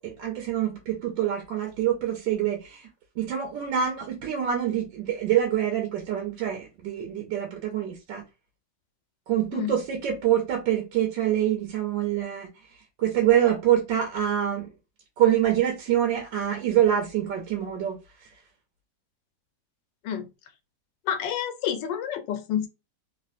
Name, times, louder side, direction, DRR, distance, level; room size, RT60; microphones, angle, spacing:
voice 1, 0.0-2.9 3.2-8.2 9.3-12.5 13.0-14.7 15.2-18.0, right 10 dB, 90° right, 1.4 m, -25 dB
voice 2, 21.1-22.7, left 9 dB, 80° left, 1.3 m, -29 dB
3.2 x 2.5 x 2.5 m
omnidirectional pair, 1.9 m